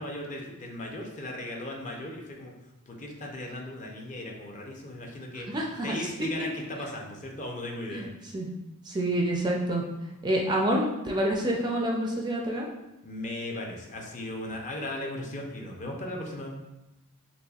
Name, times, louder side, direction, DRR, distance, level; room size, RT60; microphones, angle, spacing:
voice 1, 0.0-2.5 2.9-5.5 5.8-8.1 13.0-16.5, left 1 dB, 35° left, 0 dB, 0.6 m, -37 dB
voice 2, 5.5-6.5 7.9-8.1 8.3-8.5 8.9-9.8 10.2-12.7, right 1 dB, 20° right, -1 dB, 0.4 m, -28 dB
4.0 x 3.1 x 2.3 m, 0.97 s
head